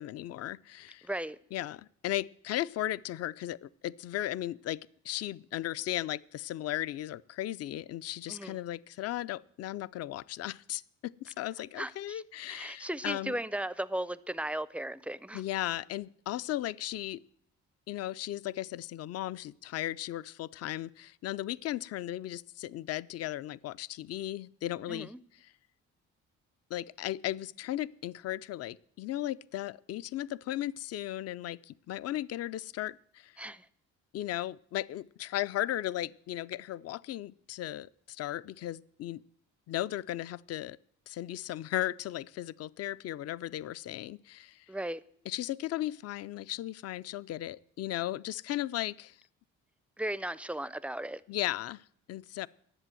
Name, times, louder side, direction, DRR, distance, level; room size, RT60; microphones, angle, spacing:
voice 1, 0.0-1.1 1.5-13.3 15.3-17.2 17.9-25.1 26.7-33.4 34.1-39.2 39.7-40.8 41.1-44.7 45.3-49.2 51.3-52.5, left 14 dB, 55° left, 0.4 m, -36 dB
voice 2, 1.0-1.4 8.3-8.6 11.8-12.2 12.5-15.4 24.9-25.2 33.4-33.7 44.7-45.0 50.0-51.2, right 1 dB, 5° right, 0.4 m, -36 dB
11.0 x 7.6 x 7.6 m
cardioid pair, 90°, 30 cm